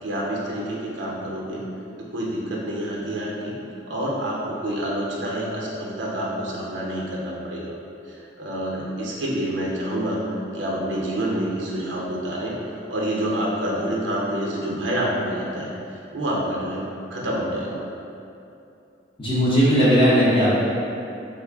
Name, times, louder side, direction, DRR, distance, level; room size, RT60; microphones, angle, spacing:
voice 1, 0.0-1.6 2.0-3.5 3.9-7.7 8.1-10.2 10.5-15.7 16.1-16.8 17.1-17.8, right 1 dB, 65° right, -3 dB, 0.6 m, -27 dB
voice 2, 19.2-20.5, equal, 25° left, -9 dB, 0.7 m, -17 dB
3.7 x 2.0 x 3.4 m, 2.7 s
head